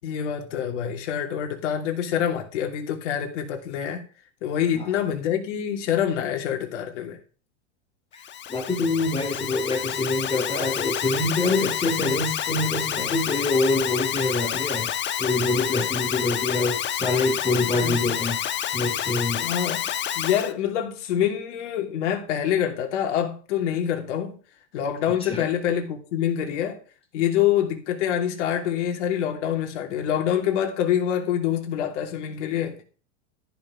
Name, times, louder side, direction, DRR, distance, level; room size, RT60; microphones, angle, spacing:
voice 1, 0.0-4.0 4.4-7.2 17.8-18.2 19.4-19.8 20.1-24.4 24.7-26.8 27.1-32.8, left 9 dB, 70° left, 3.0 m, -26 dB
Alarm, 8.2-20.5, left 10 dB, 30° left, 1.2 m, -29 dB
voice 2, 8.5-14.9 15.2-18.4 18.6-19.5 25.2-25.5, left 2 dB, 15° left, 2.8 m, -25 dB
13.5 x 5.9 x 6.4 m
hypercardioid pair, 115°, 37 cm